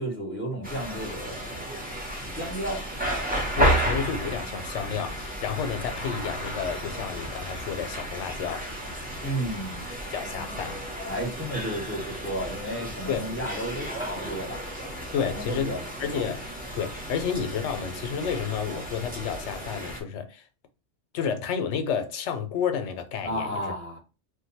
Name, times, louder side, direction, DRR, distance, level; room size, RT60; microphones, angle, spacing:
voice 1, 0.0-1.7 2.0-2.8 9.2-9.8 11.1-14.6 15.3-15.8 16.1-16.3 23.2-24.0, right 1 dB, 10° left, 0.9 m, -33 dB
sound 1, 0.6-20.0, right 1 dB, 10° right, 0.6 m, -33 dB
voice 2, 3.5-8.7 10.1-10.8 13.1-13.3 15.1-16.4 16.8-20.5 21.1-23.7, left 7 dB, 75° left, 0.9 m, -31 dB
2.5 x 2.2 x 3.9 m
omnidirectional pair, 1.3 m